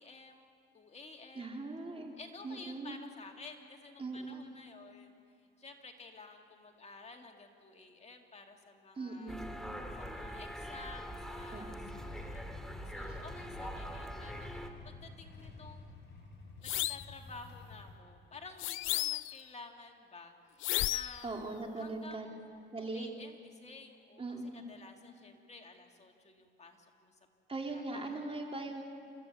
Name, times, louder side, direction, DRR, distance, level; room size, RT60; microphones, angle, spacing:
voice 1, 0.0-1.6 2.2-9.4 10.0-11.8 12.0-12.5 12.8-16.0 16.6-21.4 21.8-22.5 22.8-27.2 27.7-28.6, left 3 dB, 35° left, 3 dB, 2.1 m, -52 dB
voice 2, 1.3-2.1 2.4-3.0 4.0-4.4 8.9-9.4 11.5-11.9 21.2-22.3 22.7-23.1 24.2-24.6 27.5-28.8, right 3 dB, 30° right, 1 dB, 3.3 m, -40 dB
sound 1, 9.3-14.7, equal, ahead, 2.2 m, -43 dB
Motorcycle / Engine starting / Idling, 11.8-18.0, left 3 dB, 65° left, 7.6 m, -51 dB
sound 2, 16.6-17.1 18.6-19.4 20.6-21.2, left 16 dB, 85° left, 0.5 m, -33 dB
29.0 x 15.0 x 8.3 m, 2.4 s
cardioid pair, 90°, 20 cm